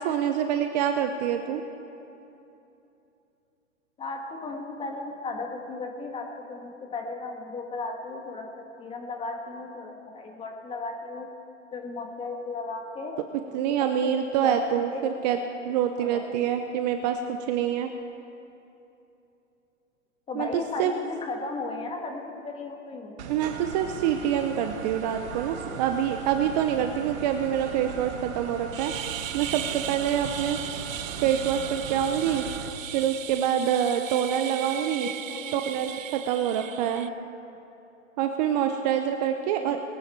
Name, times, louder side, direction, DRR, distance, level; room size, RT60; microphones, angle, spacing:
voice 1, 0.0-1.6 13.5-15.4 15.6-17.9 20.4-20.5 20.8-20.9 23.3-28.9 29.3-30.6 31.2-32.4 32.9-35.1 35.5-37.1 38.2-39.8, right 9 dB, 35° right, 6 dB, 0.7 m, -26 dB
voice 2, 4.0-11.3 11.7-13.2 14.0-15.1 16.0-16.5 20.3-23.1 34.8-35.6 39.6-39.8, left 3 dB, 15° left, 2 dB, 1.6 m, -36 dB
sound 1, 23.2-32.7, right 6 dB, 60° right, 1.5 m, -38 dB
sound 2, 28.7-37.1, right 11 dB, 90° right, 0.6 m, -37 dB
21.5 x 9.0 x 4.5 m, 2.9 s
hypercardioid pair, 135°, 39 cm